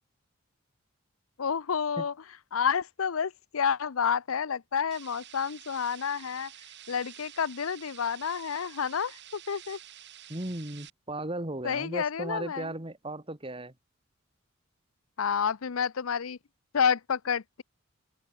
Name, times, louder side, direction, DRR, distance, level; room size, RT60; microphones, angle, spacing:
voice 1, 1.4-2.1 2.5-6.5 6.9-9.8 11.6-12.7 15.2-16.4 16.7-17.6, left 6 dB, 85° left, 0.6 m, -29 dB
sound 1, 4.9-10.9, right 12 dB, 55° right, 2.4 m, -49 dB
voice 2, 10.3-13.7, right 1 dB, 25° right, 2.3 m, -36 dB
open air
head